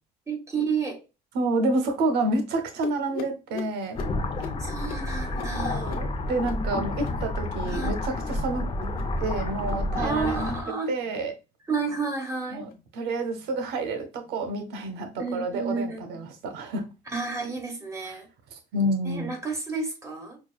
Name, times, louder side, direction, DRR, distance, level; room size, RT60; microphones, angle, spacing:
voice 1, 0.3-1.0 4.4-6.0 7.6-8.0 9.9-10.9 11.7-12.6 15.2-16.3 17.1-18.3 19.0-20.4, right 4 dB, 20° right, 1.6 m, -31 dB
voice 2, 1.3-4.0 5.6-8.7 9.2-10.6 10.9-11.3 12.5-16.8 18.7-19.3, right 2 dB, 85° right, 0.8 m, -29 dB
sound 1, 2.8-7.9 8.1-8.5 8.8-9.2 9.5-9.9 10.2-10.6 11.0-11.3 11.8-12.1 12.6-12.8 13.4-13.6 14.2-14.4 15.1-15.2 16.0-16.1, left 7 dB, 65° left, 0.9 m, -43 dB
sound 2, 4.0-10.6, left 2 dB, 35° left, 0.7 m, -30 dB
6.0 x 2.3 x 2.3 m
cardioid pair, 110°, 17 cm